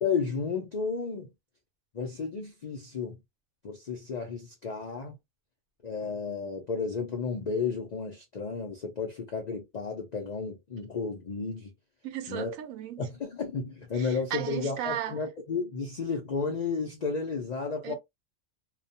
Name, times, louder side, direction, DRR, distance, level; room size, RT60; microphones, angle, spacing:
voice 1, 0.0-1.3 1.9-3.2 3.6-5.1 5.8-11.7 12.3-12.6 13.0-17.9, left 5 dB, 70° left, 0.4 m, -32 dB
voice 2, 12.0-13.1 13.9-15.2 17.8-18.0, right 11 dB, 80° right, 1.0 m, -36 dB
2.3 x 2.1 x 2.6 m
omnidirectional pair, 1.4 m